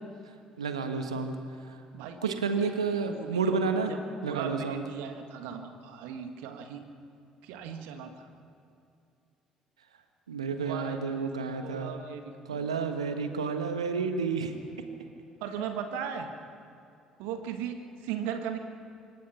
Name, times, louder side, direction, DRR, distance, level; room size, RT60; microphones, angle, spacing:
voice 1, 0.6-1.4 1.7-1.8 2.2-3.9 4.2-4.8 10.3-11.9 12.5-14.5, right 5 dB, 85° right, 7 dB, 1.3 m, -30 dB
voice 2, 1.9-2.7 3.1-4.0 4.2-6.9 7.4-8.3 10.5-11.3 11.6-12.9 15.4-16.3 17.2-18.6, right 7 dB, 65° right, 6 dB, 1.7 m, -38 dB
26.0 x 22.5 x 6.0 m, 2.6 s
figure-of-eight pair, 50°, 3 cm